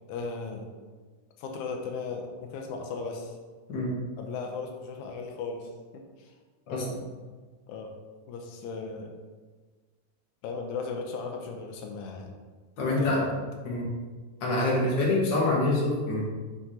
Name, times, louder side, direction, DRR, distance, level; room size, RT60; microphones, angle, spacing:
voice 1, 0.1-0.7 1.4-3.4 4.2-6.3 6.7-6.9 7.7-7.9 8.3-9.1 10.4-12.3 12.8-13.4 14.7-14.9, left 4 dB, 90° left, 3 dB, 2.1 m, -36 dB
voice 2, 12.8-13.2 13.6-13.9 14.4-16.2, left 2 dB, 45° left, -4 dB, 1.7 m, -26 dB
6.2 x 5.8 x 2.8 m, 1.4 s
omnidirectional pair, 3.4 m